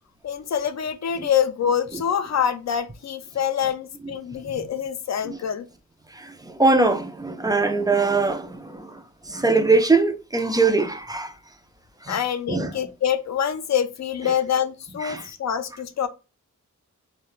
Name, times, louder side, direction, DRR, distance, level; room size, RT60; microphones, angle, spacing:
voice 1, 0.2-5.7 12.1-16.1, left 8 dB, 60° left, 0.4 m, -25 dB
voice 2, 6.1-9.0 9.3-11.3 12.0-12.2 12.5-12.7 15.0-15.3, right 3 dB, 15° right, 0.3 m, -22 dB
2.3 x 2.2 x 3.0 m
wide cardioid pair, 90°, 30 cm